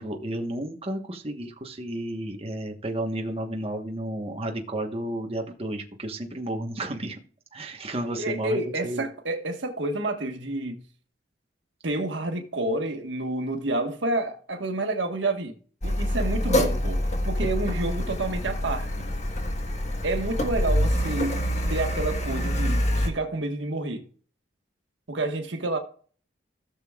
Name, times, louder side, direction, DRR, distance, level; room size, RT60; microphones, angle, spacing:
voice 1, 0.0-7.2 7.5-9.0, right 1 dB, 35° right, 1.2 m, -32 dB
voice 2, 8.2-10.8 11.8-15.5 15.8-19.1 20.0-21.4 21.7-24.1 25.1-25.8, right 2 dB, 80° right, 1.5 m, -29 dB
Car, 15.8-23.1, equal, 40° left, 1.4 m, -26 dB
16.5 x 6.9 x 2.4 m
head